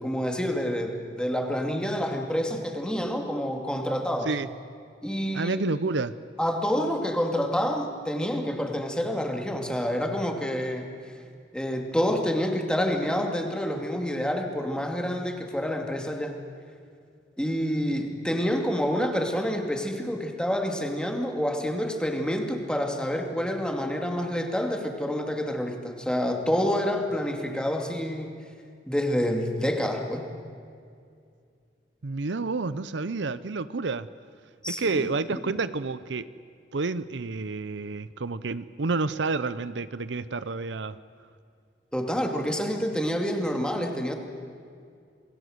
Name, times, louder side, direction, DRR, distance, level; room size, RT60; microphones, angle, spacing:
voice 1, 0.0-4.3 5.0-5.6 6.4-10.9 11.5-16.4 17.4-28.3 28.9-30.3 34.6-35.4 41.9-44.2, equal, 5° left, 3 dB, 2.6 m, -28 dB
voice 2, 5.3-6.2 32.0-34.1 34.7-36.3 36.7-41.0, right 3 dB, 75° right, 15 dB, 0.7 m, -29 dB
28.0 x 21.0 x 7.9 m, 2.3 s
head